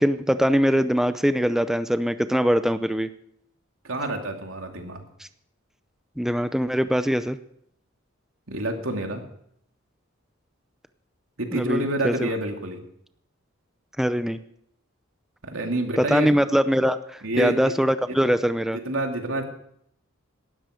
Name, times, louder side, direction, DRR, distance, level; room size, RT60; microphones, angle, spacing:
voice 1, 0.0-3.1 6.2-7.4 11.5-12.3 14.0-14.4 16.0-18.8, equal, ahead, 11 dB, 0.5 m, -22 dB
voice 2, 3.8-5.0 8.5-9.2 11.4-12.8 15.4-16.3 17.2-17.8 18.1-18.2 18.8-19.5, right 1 dB, 85° right, 3 dB, 2.7 m, -28 dB
18.5 x 12.5 x 5.1 m, 0.71 s
head